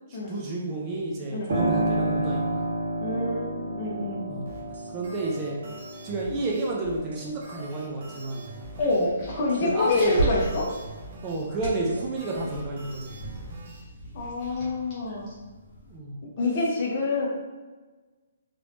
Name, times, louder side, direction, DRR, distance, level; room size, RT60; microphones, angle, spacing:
voice 1, 0.1-2.7 4.3-4.5 4.9-5.6 6.0-8.4 9.6-10.2 11.2-13.2 15.9-16.2, right 2 dB, 15° right, -2 dB, 0.3 m, -30 dB
Piano, 1.5-9.9 10.3-11.4, right 1 dB, 65° right, 1.3 m, -32 dB
voice 2, 3.0-4.3 8.8-10.7 14.1-15.3 16.4-17.3, left 2 dB, 30° left, -2 dB, 0.7 m, -27 dB
sound 1, 4.5-13.8, right 2 dB, 45° right, 0.7 m, -45 dB
sound 2, 8.6-16.0, right 2 dB, 15° left, 1.0 m, -36 dB
3.0 x 2.6 x 3.4 m, 1.3 s
hypercardioid pair, 180°, 0 cm